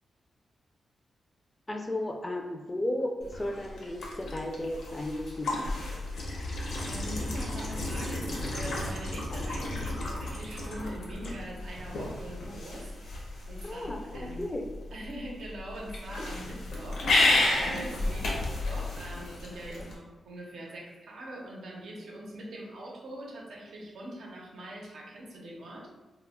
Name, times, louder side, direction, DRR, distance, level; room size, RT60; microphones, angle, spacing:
voice 1, 1.7-5.8 13.6-14.0 14.4-14.6 18.3-18.5 19.8-19.9, left 1 dB, 15° left, 1 dB, 0.3 m, -34 dB
sound 1, 3.2-19.9, left 2 dB, 85° left, 0.6 m, -32 dB
voice 2, 6.3-14.5 14.9-25.9, right 1 dB, 80° right, -2 dB, 0.6 m, -43 dB
2.2 x 2.1 x 3.4 m, 1.2 s
wide cardioid pair, 130°, 0 cm